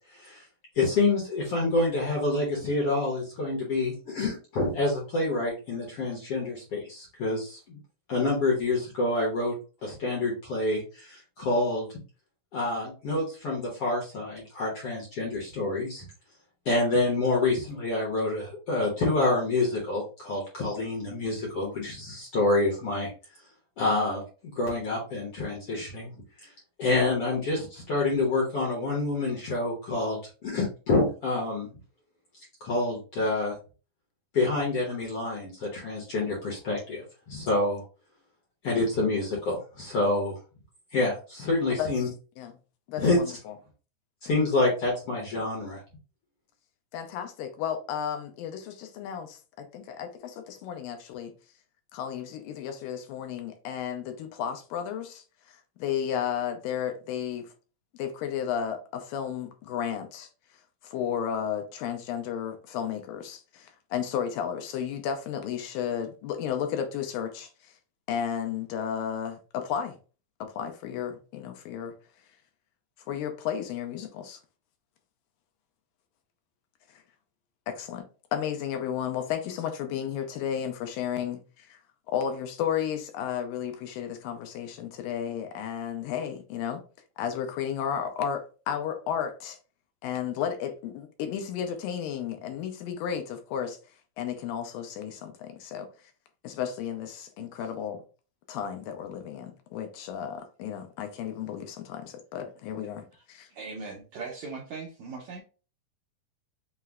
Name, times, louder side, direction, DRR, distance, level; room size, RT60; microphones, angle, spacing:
voice 1, 0.1-0.4 0.7-7.8 8.1-9.5 9.8-11.9 12.5-16.1 16.6-23.1 23.8-26.1 26.4-26.5 26.8-31.7 32.6-33.5 34.3-37.8 38.6-40.3 40.9-42.1 43.0-43.2 44.2-45.8, left 2 dB, 65° left, 1.4 m, -27 dB
voice 2, 41.8-42.1 42.4-42.5 42.9-43.5 46.9-51.3 51.9-57.5 58.0-60.3 60.8-67.7 68.1-70.0 70.4-71.9 73.1-74.4 76.9-77.0 77.7-81.8 82.1-86.8 87.2-89.6 90.0-93.8 94.2-95.9 96.4-98.0 98.5-103.5, left 8 dB, 85° left, 2.2 m, -33 dB
voice 3, 103.5-105.4, right 4 dB, 80° right, 1.6 m, -39 dB
5.6 x 2.1 x 3.5 m
omnidirectional pair, 4.1 m